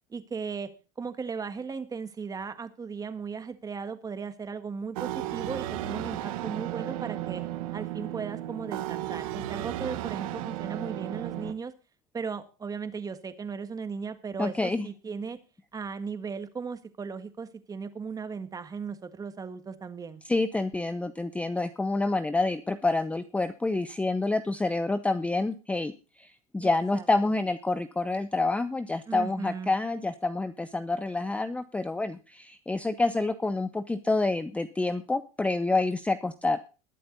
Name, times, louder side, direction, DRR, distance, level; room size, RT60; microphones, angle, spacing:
voice 1, 0.1-0.7 1.0-7.4 7.7-11.7 12.1-15.4 15.7-20.2 26.6-27.1 29.1-29.7, right 5 dB, 20° right, 9 dB, 1.6 m, -37 dB
sound 1, 4.9-11.5, right 13 dB, 75° right, 1.4 m, -34 dB
voice 2, 14.4-14.9 20.2-25.9 26.2-36.6, left 2 dB, 5° left, 11 dB, 0.7 m, -28 dB
21.0 x 7.7 x 4.0 m, 0.33 s
supercardioid pair, 110°, 18 cm